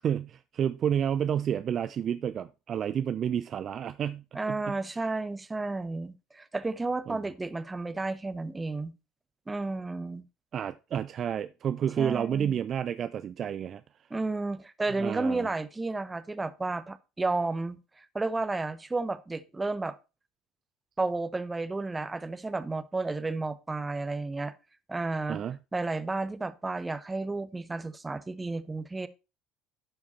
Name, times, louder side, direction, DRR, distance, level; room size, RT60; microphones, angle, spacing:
voice 1, 0.0-4.7 7.1-7.2 10.5-13.8 15.0-15.5 25.3-25.6, right 9 dB, 45° right, 0.4 m, -30 dB
voice 2, 4.3-8.9 9.5-10.2 12.0-12.6 14.1-20.0 21.0-24.5 24.9-25.4 25.7-29.1, right 3 dB, 15° right, 0.9 m, -32 dB
12.0 x 4.7 x 4.2 m
figure-of-eight pair, 60°, 0 cm